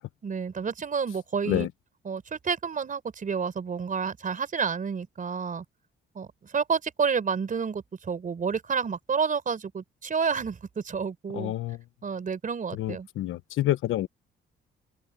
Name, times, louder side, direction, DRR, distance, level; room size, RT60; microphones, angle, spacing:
voice 1, 0.2-1.7 2.1-5.6 6.1-11.5 12.0-13.1, right 6 dB, 40° right, 4.4 m, -30 dB
voice 2, 11.3-11.8 12.7-14.1, left 14 dB, 80° left, 1.1 m, -28 dB
cardioid pair, 90°, 20 cm